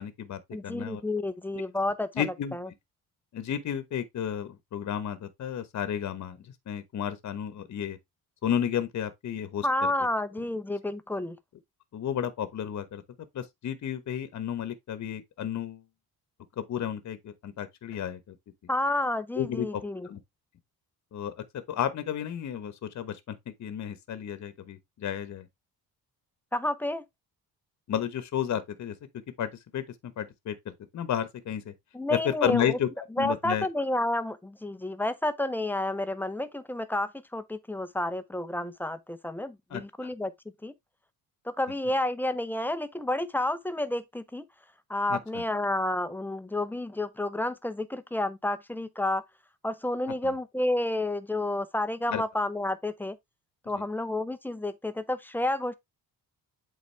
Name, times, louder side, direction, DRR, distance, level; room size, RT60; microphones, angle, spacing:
voice 1, 0.0-1.0 2.1-2.5 3.3-8.0 8.4-9.9 11.9-13.0 13.3-15.8 16.6-18.3 19.3-20.2 21.1-21.3 21.7-25.5 27.9-29.0 29.4-31.7 32.1-32.9 33.2-33.7 39.7-40.1 45.1-45.4 50.2-50.3 52.1-52.2 53.8-53.9, left 9 dB, 50° left, 1.1 m, -32 dB
voice 2, 0.5-2.2 2.5-2.7 9.6-11.4 18.7-20.1 26.5-27.0 31.9-32.8 33.2-40.3 40.6-40.7 41.5-44.4 44.9-49.2 49.6-53.2 53.7-55.7, left 1 dB, 5° left, 0.6 m, -30 dB
8.2 x 3.9 x 3.2 m
cardioid pair, 120°, 36 cm